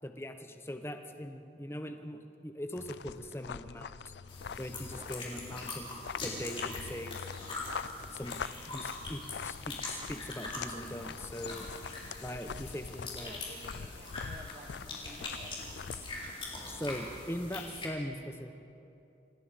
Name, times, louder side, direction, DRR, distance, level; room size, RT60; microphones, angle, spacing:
voice 1, 0.0-4.1 4.6-5.9 6.2-7.2 8.1-8.4 8.7-11.7 12.2-13.4 16.7-18.5, equal, 15° left, 6 dB, 1.0 m, -41 dB
sound 1, 2.8-16.3, left 6 dB, 70° left, 0.4 m, -44 dB
sound 2, 4.3-17.9, left 2 dB, 30° left, 3.9 m, -43 dB
voice 2, 13.2-16.2, right 1 dB, 35° right, 5 dB, 1.3 m, -53 dB
27.0 x 19.0 x 5.2 m, 2.8 s
head